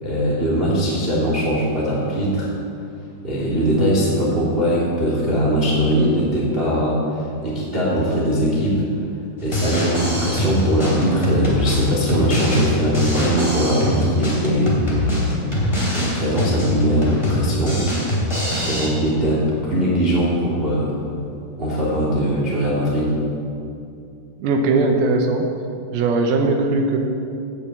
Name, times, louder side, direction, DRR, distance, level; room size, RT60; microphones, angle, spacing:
voice 1, 0.0-2.5 3.2-8.8 9.4-14.7 15.9-17.8 18.6-20.9 21.6-23.1, equal, 30° right, -5 dB, 1.0 m, -20 dB
Drum kit, 9.4-18.9, left 1 dB, 10° left, 2.1 m, -23 dB
voice 2, 24.4-25.5 25.9-27.0, right 3 dB, 75° right, 3 dB, 2.5 m, -19 dB
8.9 x 8.6 x 8.2 m, 2.6 s
omnidirectional pair, 5.0 m